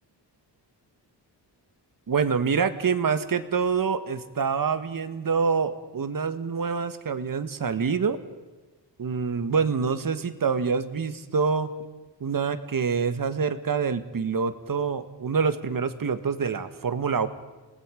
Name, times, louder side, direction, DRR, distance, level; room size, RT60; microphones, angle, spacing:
voice 1, 2.1-8.2 9.0-11.7 12.2-17.3, right 5 dB, 50° right, 11 dB, 1.5 m, -26 dB
29.0 x 19.5 x 5.1 m, 1.2 s
wide cardioid pair, 120°, 44 cm